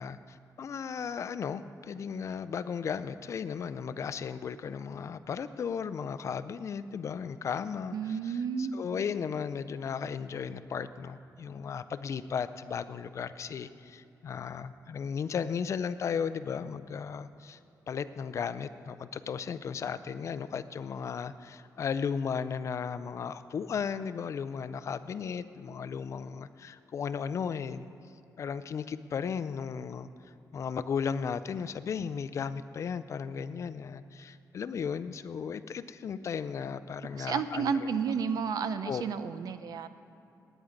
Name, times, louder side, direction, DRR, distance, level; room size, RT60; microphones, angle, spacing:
voice 1, 0.0-17.6 17.9-27.9 28.4-30.1 30.5-37.9 38.8-39.0, left 6 dB, 50° left, 13 dB, 0.4 m, -35 dB
voice 2, 7.9-9.0 37.1-40.0, right 6 dB, 70° right, 11 dB, 0.6 m, -32 dB
9.1 x 8.7 x 9.6 m, 2.9 s
wide cardioid pair, 165°, 7 cm